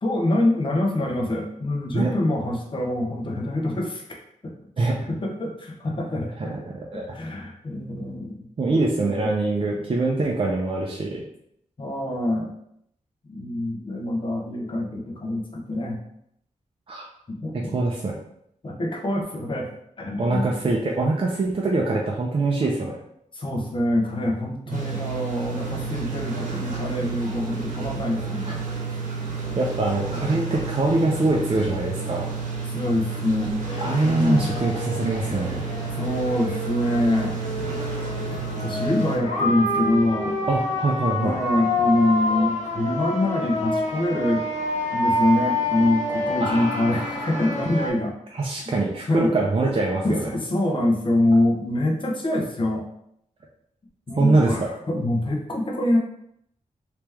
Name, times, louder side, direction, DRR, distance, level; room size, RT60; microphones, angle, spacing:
voice 1, 0.0-4.0 4.4-9.3 9.6-9.8 11.8-12.5 13.3-16.0 17.3-17.7 18.6-19.7 20.0-20.6 23.3-28.6 28.9-29.0 32.6-33.5 34.0-34.5 35.9-37.4 38.6-40.4 41.2-44.4 44.9-48.2 49.1-49.3 50.0-52.9 54.1-56.0, left 1 dB, 40° left, -1 dB, 0.8 m, -25 dB
voice 2, 6.4-7.1 8.6-11.2 16.9-17.1 17.5-18.1 20.2-23.0 29.6-32.2 33.8-35.6 40.5-41.4 46.4-47.6 48.3-50.3 54.2-54.7, right 2 dB, 45° right, -2 dB, 0.5 m, -24 dB
sound 1, 24.7-39.2, right 4 dB, 75° right, 1.1 m, -31 dB
sound 2, 33.7-47.9, left 2 dB, 60° left, 1.1 m, -28 dB
3.3 x 2.9 x 3.4 m, 0.72 s
wide cardioid pair, 115°, 13 cm